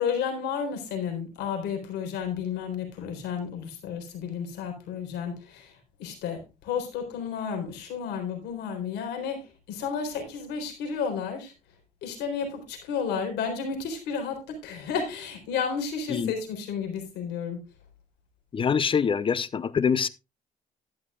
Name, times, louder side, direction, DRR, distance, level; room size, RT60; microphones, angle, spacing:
voice 1, 0.0-11.5 12.0-17.6, left 6 dB, 80° left, 4.1 m, -32 dB
voice 2, 18.5-20.1, left 6 dB, 30° left, 0.6 m, -24 dB
12.5 x 11.0 x 2.3 m
cardioid pair, 110°, 17 cm